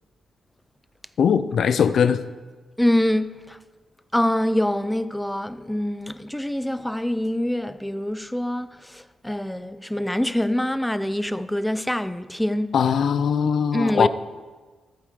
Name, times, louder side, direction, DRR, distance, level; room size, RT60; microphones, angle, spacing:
voice 1, 1.2-2.2 12.7-14.1, left 7 dB, 60° left, 0.5 m, -20 dB
voice 2, 2.8-3.6 4.1-12.8 13.7-14.1, left 1 dB, 5° left, 0.4 m, -25 dB
14.0 x 8.2 x 3.7 m
cardioid pair, 135°, 0 cm